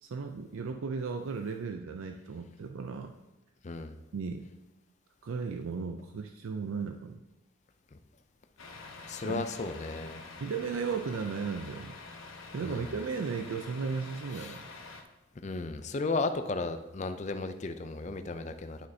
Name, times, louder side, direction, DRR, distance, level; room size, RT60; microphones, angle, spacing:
voice 1, 0.0-3.1 4.1-4.4 5.2-7.2 9.2-9.4 10.4-12.0 12.5-14.6, right 5 dB, 75° right, 5 dB, 0.4 m, -35 dB
voice 2, 3.6-4.0 9.1-10.2 12.6-12.9 14.4-14.6 15.4-18.8, left 3 dB, 35° left, 8 dB, 0.4 m, -34 dB
Truck, 8.6-15.0, left 3 dB, 75° left, 1.0 m, -47 dB
11.5 x 6.3 x 2.8 m, 1.0 s
head